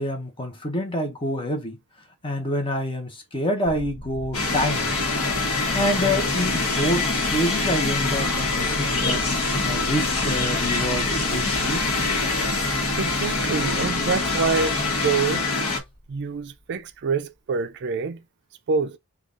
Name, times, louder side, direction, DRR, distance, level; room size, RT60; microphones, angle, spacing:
voice 1, 0.0-1.8 2.2-4.9 5.7-9.2 9.6-11.8, equal, 25° left, 0.9 m, -27 dB
sound 1, 3.6-16.6, equal, 45° left, 0.9 m, -37 dB
sound 2, 4.3-15.8, left 3 dB, 85° left, 1.0 m, -24 dB
voice 2, 13.0-15.5 16.1-18.2 18.7-19.0, right 5 dB, 55° right, 0.4 m, -26 dB
3.7 x 2.3 x 3.7 m
head